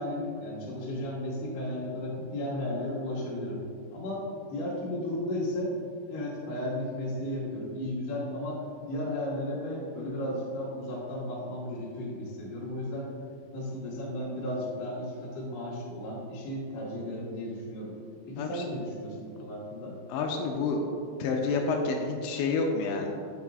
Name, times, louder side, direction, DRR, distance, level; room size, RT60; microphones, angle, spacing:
voice 1, 0.0-3.6 3.9-4.2 4.5-5.7 6.1-13.1 13.5-17.9 18.3-19.9, left 1 dB, 60° left, -7 dB, 2.4 m, -34 dB
voice 2, 20.1-20.8 21.2-23.1, left 4 dB, 90° left, 1 dB, 2.8 m, -29 dB
9.4 x 7.3 x 2.4 m, 2.4 s
omnidirectional pair, 5.0 m